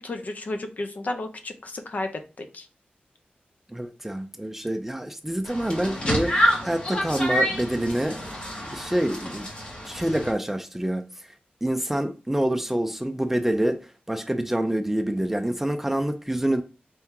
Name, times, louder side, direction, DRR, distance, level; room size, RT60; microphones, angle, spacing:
voice 1, 0.0-2.7, left 2 dB, 50° left, 0.6 m, -33 dB
voice 2, 3.7-8.2 8.7-9.5 9.9-11.3 11.6-16.6, right 1 dB, 10° right, 0.4 m, -27 dB
sound 1, 5.4-10.3, equal, 35° left, 1.4 m, -27 dB
4.5 x 2.8 x 3.6 m
wide cardioid pair, 130°, 3 cm